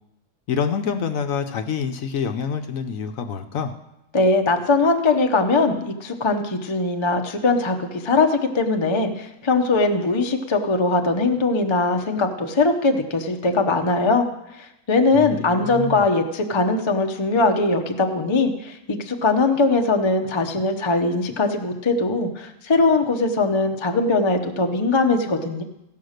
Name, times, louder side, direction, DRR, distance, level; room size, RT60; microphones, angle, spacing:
voice 1, 0.5-3.7 15.1-16.0, left 6 dB, 65° left, 7 dB, 1.0 m, -27 dB
voice 2, 4.1-7.8 8.0-14.3 14.6-25.6, left 3 dB, 30° left, 5 dB, 0.5 m, -21 dB
16.0 x 5.7 x 6.5 m, 0.90 s
omnidirectional pair, 1.7 m